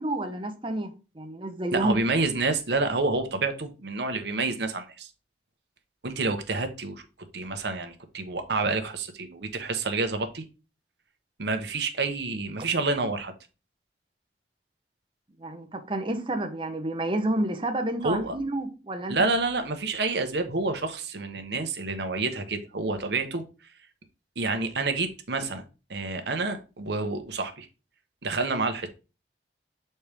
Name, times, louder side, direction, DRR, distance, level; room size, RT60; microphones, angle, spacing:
voice 1, 0.0-2.0 15.4-19.2, right 1 dB, 30° right, 0.8 m, -29 dB
voice 2, 1.7-5.1 6.0-7.0 7.3-10.4 11.4-13.3 18.0-18.4 19.1-23.4 24.4-25.6 25.9-27.7 28.2-28.9, right 3 dB, 70° right, 1.0 m, -28 dB
6.7 x 4.3 x 3.4 m
head